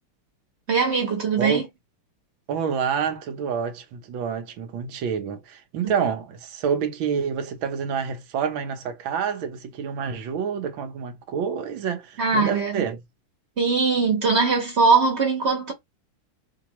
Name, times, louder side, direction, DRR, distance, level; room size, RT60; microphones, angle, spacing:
voice 1, 0.7-1.7 5.8-5.9 12.2-12.8 13.6-15.7, right 4 dB, 40° right, 1.3 m, -21 dB
voice 2, 2.5-13.0, right 7 dB, 75° right, 1.6 m, -28 dB
4.6 x 2.7 x 3.0 m
omnidirectional pair, 2.2 m